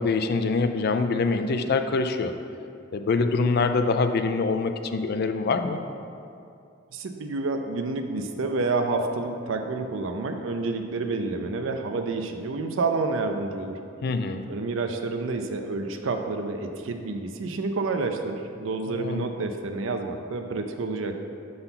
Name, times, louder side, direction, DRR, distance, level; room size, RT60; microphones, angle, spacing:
voice 1, 0.0-2.3 2.9-5.8 14.0-14.5 18.9-19.3, left 4 dB, 50° left, 8 dB, 0.4 m, -25 dB
voice 2, 6.9-13.8 14.5-21.2, right 3 dB, 75° right, 5 dB, 0.5 m, -29 dB
6.6 x 4.0 x 5.7 m, 2.5 s
head